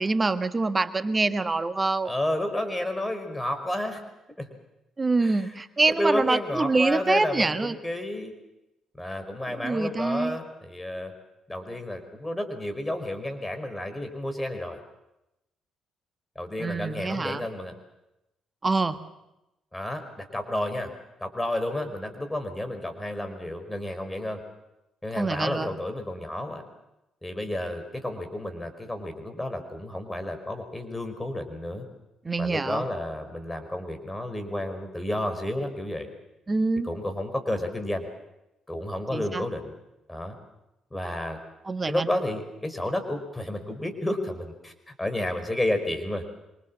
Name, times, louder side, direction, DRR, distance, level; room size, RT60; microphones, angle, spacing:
voice 1, 0.0-2.1 5.0-7.7 9.5-10.4 16.6-17.4 18.6-19.0 25.2-25.7 32.2-32.8 36.5-36.9 39.1-39.4 41.6-42.1, right 3 dB, 25° right, 11 dB, 1.6 m, -25 dB
voice 2, 2.1-4.0 4.4-4.5 5.2-5.5 5.9-8.4 9.0-11.1 11.5-14.8 16.4-17.7 19.7-20.9 21.2-24.4 25.0-26.6 27.2-31.8 32.4-36.1 36.8-38.0 38.7-39.7 40.1-40.3 40.9-41.4 41.9-44.7 45.0-46.2, left 1 dB, 10° left, 7 dB, 5.3 m, -31 dB
26.5 x 24.5 x 7.5 m, 0.92 s
figure-of-eight pair, 45°, 0 cm